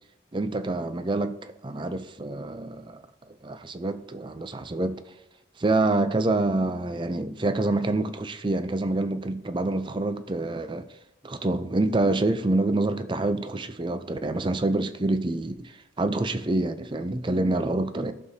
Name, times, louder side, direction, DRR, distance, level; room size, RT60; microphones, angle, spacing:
voice 1, 0.3-3.0 3.4-4.9 5.6-10.8 11.2-18.1, right 2 dB, 25° right, 0.4 m, -27 dB
14.0 x 6.5 x 2.8 m
head